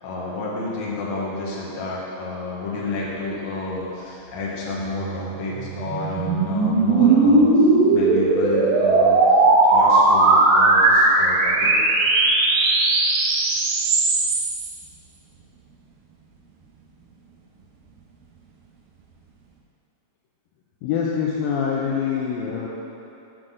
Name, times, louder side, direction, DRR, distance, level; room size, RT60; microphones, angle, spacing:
voice 1, 0.0-11.7, left 2 dB, 60° left, -6 dB, 2.0 m, -30 dB
sound 1, 5.0-14.7, right 2 dB, 75° right, 2.3 m, -18 dB
voice 2, 20.8-22.7, left 7 dB, 80° left, -3 dB, 2.1 m, -24 dB
7.6 x 6.1 x 3.8 m, 2.9 s
omnidirectional pair, 4.5 m